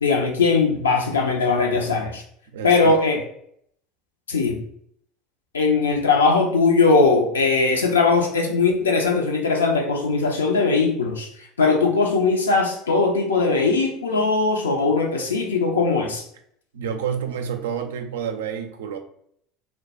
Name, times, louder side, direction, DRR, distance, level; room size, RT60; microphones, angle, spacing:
voice 1, 0.0-2.2 2.6-3.2 4.3-4.6 5.5-11.3 11.6-16.3, left 4 dB, 80° left, 2 dB, 0.5 m, -20 dB
voice 2, 2.5-3.0 16.7-19.0, right 7 dB, 70° right, 6 dB, 0.3 m, -29 dB
2.2 x 2.2 x 3.9 m, 0.68 s
figure-of-eight pair, 70°, 0 cm